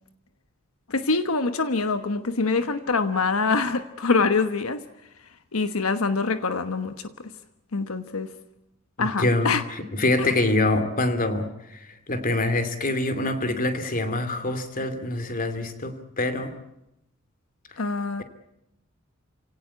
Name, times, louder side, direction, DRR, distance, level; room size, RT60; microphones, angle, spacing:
voice 1, 0.9-4.8 5.5-7.1 7.7-8.3 9.0-9.6 17.8-18.2, left 4 dB, 90° left, 9 dB, 1.2 m, -24 dB
voice 2, 9.0-16.5, left 2 dB, 40° left, 9 dB, 2.7 m, -25 dB
28.5 x 17.5 x 8.3 m, 0.86 s
head